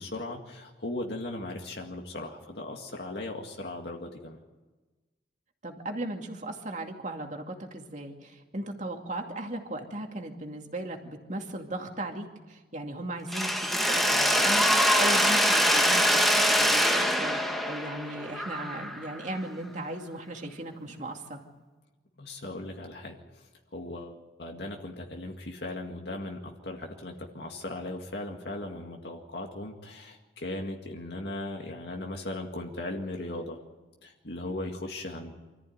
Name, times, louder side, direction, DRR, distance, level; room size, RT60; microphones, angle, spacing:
voice 1, 0.0-4.4 22.2-33.6 34.0-35.3, left 2 dB, 65° left, 1 dB, 2.1 m, -38 dB
voice 2, 5.6-21.4, right 1 dB, 40° right, 3 dB, 2.5 m, -37 dB
Mechanisms, 13.3-19.2, equal, ahead, 1.7 m, -24 dB
26.0 x 14.5 x 9.5 m, 1.2 s
head